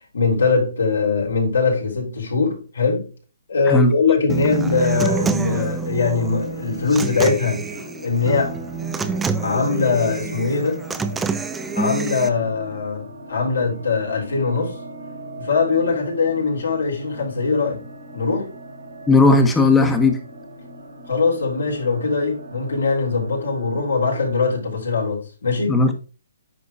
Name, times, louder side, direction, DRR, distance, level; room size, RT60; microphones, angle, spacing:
voice 1, 0.1-3.0 3.5-7.6 8.0-8.6 9.0-9.1 9.4-10.8 11.8-14.8 15.4-17.8 18.1-18.5 21.1-25.8, left 4 dB, 75° left, 3.6 m, -21 dB
Human voice / Acoustic guitar, 4.3-12.3, right 5 dB, 10° right, 0.5 m, -27 dB
sound 1, 6.3-24.6, right 1 dB, 80° right, 3.5 m, -39 dB
voice 2, 19.1-20.2 25.7-25.9, left 2 dB, 10° left, 1.2 m, -15 dB
9.5 x 5.2 x 2.4 m
hypercardioid pair, 140°, 0 cm